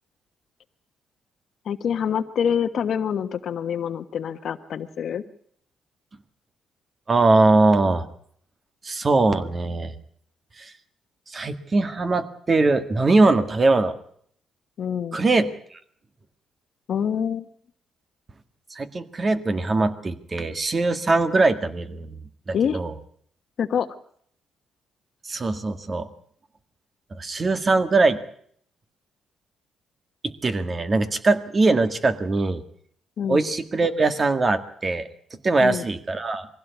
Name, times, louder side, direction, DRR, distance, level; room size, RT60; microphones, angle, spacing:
voice 1, 1.6-5.2 14.8-15.2 16.9-17.5 22.5-22.8 23.6-23.9 33.2-33.4 35.6-35.8, left 8 dB, 60° left, 10 dB, 1.3 m, -26 dB
voice 2, 7.1-8.1 8.8-9.9 10.6-10.7 11.3-14.0 15.1-15.8 18.7-22.9 25.2-26.1 27.1-28.2 30.2-32.6 33.3-36.5, right 3 dB, 35° right, 9 dB, 1.9 m, -21 dB
21.5 x 16.0 x 8.3 m, 0.64 s
cardioid pair, 90°, 0 cm